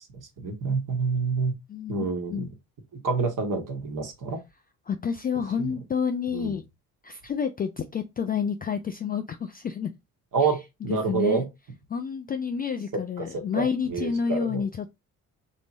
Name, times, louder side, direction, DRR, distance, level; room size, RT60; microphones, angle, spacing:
voice 1, 0.4-1.5 1.9-2.5 2.9-4.4 5.6-5.7 6.3-6.5 10.3-11.4 12.9-14.6, right 5 dB, 45° right, 1.3 m, -28 dB
voice 2, 1.7-2.5 4.9-6.6 7.0-9.9 10.9-11.4 11.9-14.9, left 6 dB, 20° left, 0.3 m, -29 dB
3.7 x 2.9 x 2.5 m
hypercardioid pair, 50°, 45 cm